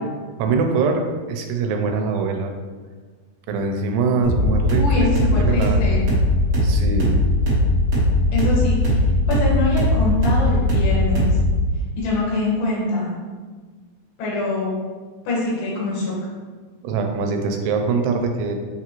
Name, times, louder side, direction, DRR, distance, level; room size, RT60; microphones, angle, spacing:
voice 1, 0.4-1.0 1.3-2.6 3.5-5.9 6.6-7.3 16.8-18.6, right 4 dB, 85° right, 4 dB, 2.6 m, -23 dB
sound 1, 4.2-11.6, left 1 dB, 65° right, 1.4 m, -19 dB
voice 2, 4.8-6.0 8.3-11.3 12.0-13.1 14.2-14.8 15.3-16.1, left 2 dB, 90° left, -5 dB, 3.5 m, -24 dB
7.1 x 2.4 x 3.0 m, 1.4 s
omnidirectional pair, 4.7 m